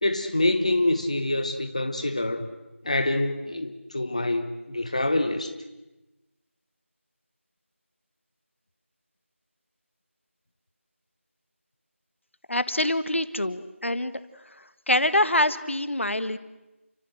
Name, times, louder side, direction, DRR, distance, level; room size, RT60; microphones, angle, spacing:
voice 1, 0.0-2.5 2.8-5.5, left 2 dB, 30° left, 7 dB, 1.3 m, -26 dB
voice 2, 12.5-14.1 14.9-16.4, left 1 dB, 65° left, 13 dB, 1.6 m, -25 dB
30.0 x 24.5 x 7.8 m, 1.1 s
figure-of-eight pair, 180°, 7 cm